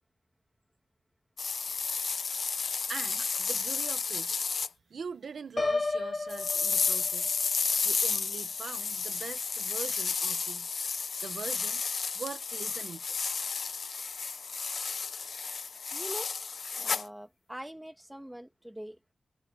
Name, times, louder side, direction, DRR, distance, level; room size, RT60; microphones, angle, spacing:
sound 1, 1.4-4.7 6.3-17.1, left 5 dB, 65° left, 1.0 m, -32 dB
voice 1, 2.9-4.4 4.9-7.4 7.8-10.7 11.2-11.8 12.1-13.2, right 5 dB, 80° right, 1.5 m, -42 dB
Piano, 5.6-7.5, left 3 dB, 35° left, 0.7 m, -32 dB
voice 2, 15.9-16.3 16.8-19.1, equal, 5° right, 2.7 m, -43 dB
wide cardioid pair, 125°, 0 cm